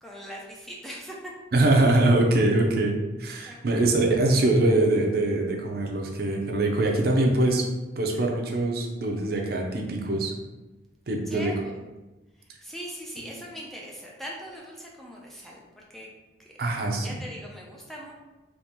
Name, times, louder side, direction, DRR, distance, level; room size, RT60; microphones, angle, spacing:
voice 1, 0.0-1.3 3.5-3.6 11.3-11.8 12.4-16.1 16.4-16.7 17.0-18.2, equal, ahead, -3 dB, 0.4 m, -41 dB
voice 2, 1.5-7.6 8.0-10.3 11.1-11.5 13.2-13.3 16.6-17.2, right 2 dB, 55° right, 1 dB, 0.6 m, -23 dB
3.5 x 3.1 x 2.9 m, 1.1 s
head